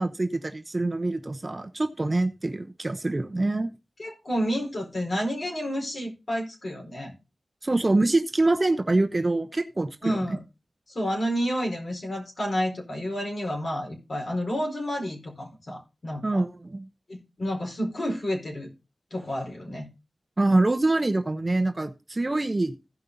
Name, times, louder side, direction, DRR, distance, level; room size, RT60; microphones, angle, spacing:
voice 1, 0.0-3.7 7.6-10.4 16.2-16.9 20.4-22.7, right 2 dB, 30° right, 7 dB, 0.9 m, -25 dB
voice 2, 4.0-7.1 10.0-10.4 10.9-16.4 17.1-18.7 19.1-19.9, equal, 55° left, -1 dB, 4.6 m, -30 dB
16.0 x 5.4 x 4.0 m, 0.28 s
wide cardioid pair, 90°, 0 cm